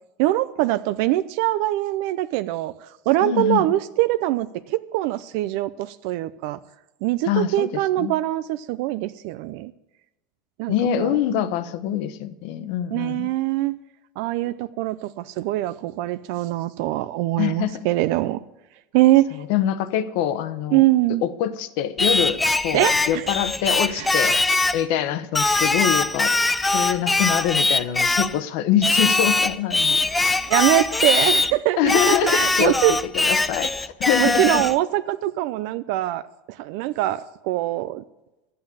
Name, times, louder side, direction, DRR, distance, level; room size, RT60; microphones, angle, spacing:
voice 1, 0.2-6.6 7.0-9.7 10.6-11.2 12.9-13.8 14.2-18.4 18.9-19.4 20.7-21.2 22.7-23.3 23.9-24.1 30.5-33.0 34.2-36.2 36.5-38.0, right 16 dB, 60° right, 12 dB, 0.4 m, -23 dB
voice 2, 3.2-3.7 7.3-7.7 8.0-8.1 10.7-13.3 17.4-17.9 19.3-20.8 21.2-24.4 24.7-26.3 26.6-30.1 31.8-34.6, left 10 dB, 60° left, 13 dB, 1.0 m, -24 dB
Singing, 22.0-24.8 25.4-28.4 28.8-31.5 31.9-34.8, left 3 dB, 10° left, 0.5 m, -21 dB
12.5 x 8.6 x 8.6 m, 0.99 s
supercardioid pair, 155°, 0 cm